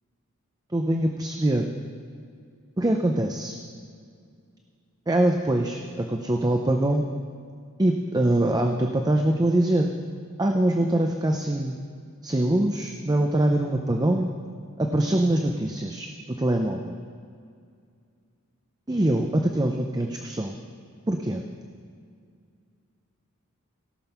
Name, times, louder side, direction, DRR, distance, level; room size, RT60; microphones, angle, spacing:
voice 1, 0.7-1.7 2.8-3.5 5.1-7.1 7.8-9.9 10.4-11.8 12.2-14.3 14.8-17.0 18.9-20.6 21.1-21.4, right 1 dB, 20° right, 3 dB, 0.5 m, -23 dB
17.5 x 6.2 x 5.8 m, 2.3 s
head